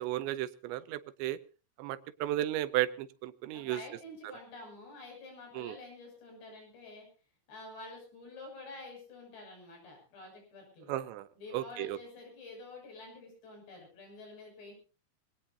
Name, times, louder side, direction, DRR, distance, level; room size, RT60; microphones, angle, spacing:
voice 1, 0.0-1.4 1.8-3.8 5.6-5.8 10.9-11.3 11.5-12.0, right 14 dB, 85° right, 14 dB, 3.2 m, -34 dB
voice 2, 3.5-7.1 7.5-10.9 11.4-14.7, left 2 dB, 70° left, 2 dB, 8.9 m, -48 dB
23.5 x 18.0 x 2.8 m, 0.34 s
omnidirectional pair, 5.0 m